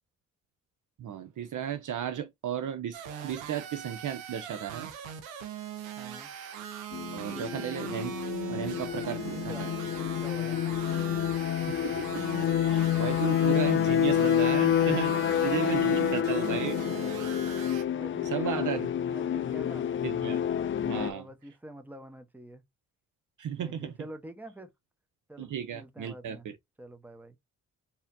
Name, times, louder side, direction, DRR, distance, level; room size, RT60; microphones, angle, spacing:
voice 1, 1.0-4.9 7.1-8.1 8.5-9.7 11.5-12.3 12.5-17.1 18.3-18.9 20.0-20.4 20.8-21.3 23.4-23.9 25.4-26.6, right 9 dB, 50° right, 0.6 m, -34 dB
sound 1, 2.9-17.8, right 9 dB, 90° right, 0.7 m, -41 dB
voice 2, 6.0-6.3 7.3-7.5 8.9-9.7 10.0-10.6 15.1-15.2 17.2-17.4 17.9-19.9 20.9-22.6 23.5-24.7 25.3-26.5 26.8-27.4, right 1 dB, 5° right, 1.0 m, -46 dB
sound 2, 6.9-21.1, left 10 dB, 30° left, 0.4 m, -28 dB
4.0 x 2.8 x 2.6 m
hypercardioid pair, 40°, 40 cm